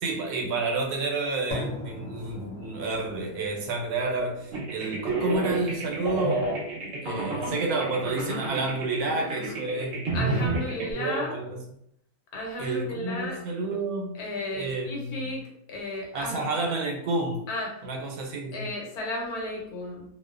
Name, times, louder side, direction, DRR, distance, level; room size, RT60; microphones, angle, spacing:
voice 1, 0.0-6.5 7.0-10.0 10.5-11.6 12.6-14.2 14.5-15.4 16.1-17.5 17.8-18.6, right 3 dB, 90° right, 2 dB, 1.1 m, -30 dB
sound 1, 1.5-9.5, left 1 dB, 75° left, 1.1 m, -42 dB
sound 2, 4.5-10.9, right 2 dB, 55° right, 0.9 m, -30 dB
voice 2, 10.1-11.3 12.3-13.4 14.1-15.4 15.7-16.4 17.5-17.7 18.5-20.0, left 1 dB, 90° left, -1 dB, 1.2 m, -33 dB
2.6 x 2.1 x 2.4 m, 0.75 s
omnidirectional pair, 1.6 m